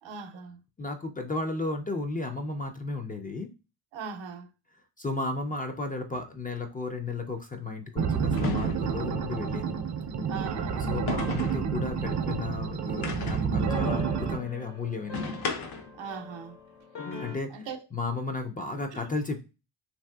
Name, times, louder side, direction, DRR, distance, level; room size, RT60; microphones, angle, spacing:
voice 1, 0.0-0.6 3.9-4.5 10.2-10.9 15.9-16.6 17.5-17.9 18.9-19.1, right 6 dB, 85° right, 0.7 m, -39 dB
voice 2, 0.8-3.5 5.0-9.7 10.7-15.4 17.2-17.5 17.9-19.4, left 3 dB, 20° left, 0.3 m, -34 dB
sound 1, 6.1-6.3 8.3-9.1 11.1-11.7 13.0-13.6 15.1-16.0, left 4 dB, 55° left, 0.6 m, -34 dB
sound 2, 8.0-14.4, right 6 dB, 40° right, 0.4 m, -29 dB
sound 3, 10.8-12.3 13.7-17.4, left 3 dB, 90° left, 1.0 m, -42 dB
3.1 x 2.7 x 2.2 m
cardioid pair, 110°, 44 cm